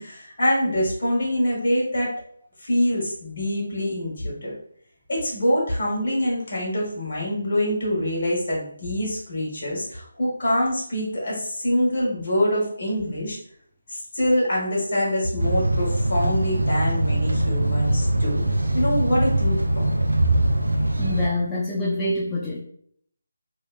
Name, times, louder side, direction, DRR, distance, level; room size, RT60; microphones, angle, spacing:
voice 1, 0.0-2.1 2.6-4.5 5.1-13.4 13.9-18.4 18.7-20.3, equal, 55° left, -3 dB, 1.2 m, -25 dB
sound 1, 15.4-21.3, right 1 dB, 80° right, 0.4 m, -23 dB
voice 2, 21.0-22.6, left 1 dB, 10° left, -7 dB, 0.4 m, -26 dB
2.8 x 2.1 x 2.3 m, 0.63 s
figure-of-eight pair, 155°, 0 cm